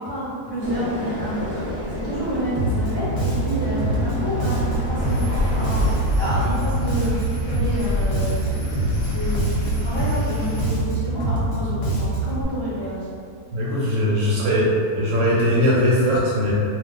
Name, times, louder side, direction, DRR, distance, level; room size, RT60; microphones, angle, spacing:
voice 1, 0.1-13.1, equal, 30° left, -12 dB, 0.5 m, -29 dB
sound 1, 0.6-6.0, equal, 10° right, 0.9 m, -30 dB
Bass guitar, 2.5-12.4, right 1 dB, 90° left, 1.3 m, -24 dB
sound 2, 5.0-10.6, left 1 dB, 70° left, 1.0 m, -28 dB
voice 2, 13.5-16.5, equal, 70° right, -7 dB, 0.8 m, -20 dB
2.4 x 2.3 x 3.5 m, 2.4 s
omnidirectional pair, 1.6 m